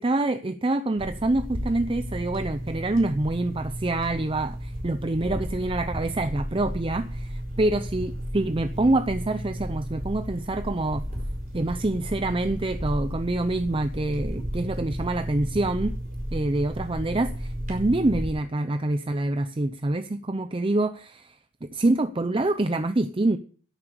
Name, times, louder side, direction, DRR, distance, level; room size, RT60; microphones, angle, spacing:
voice 1, 0.0-11.0 11.5-16.0 16.3-23.4, right 2 dB, 25° right, 9 dB, 0.6 m, -26 dB
sound 1, 1.0-18.3, equal, 40° right, 4.8 m, -33 dB
11.0 x 8.7 x 7.0 m, 0.43 s
head